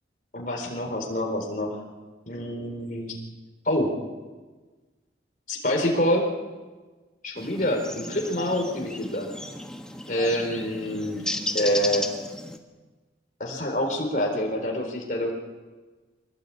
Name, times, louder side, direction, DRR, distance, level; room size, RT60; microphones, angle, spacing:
voice 1, 0.3-1.7 2.3-3.2 3.7-3.9 5.5-6.3 7.2-9.3 10.1-11.2 11.5-12.1 13.4-15.3, left 1 dB, 45° left, 1 dB, 4.0 m, -26 dB
sound 1, 7.4-12.6, left 1 dB, 5° left, 1.4 m, -34 dB
23.0 x 18.5 x 8.6 m, 1.3 s
head